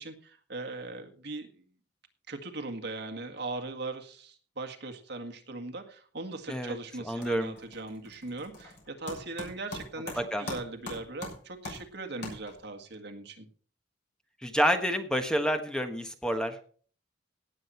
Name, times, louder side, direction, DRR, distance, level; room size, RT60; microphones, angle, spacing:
voice 1, 0.0-1.5 2.3-10.1 10.4-13.5, right 2 dB, 65° right, 4 dB, 1.9 m, -39 dB
sound 1, 6.3-6.7 7.0-12.8, left 2 dB, 65° left, 6.4 m, -43 dB
voice 2, 7.0-7.6 10.2-10.4 14.4-16.6, equal, 5° left, 6 dB, 1.3 m, -28 dB
17.5 x 7.7 x 4.4 m, 0.43 s
head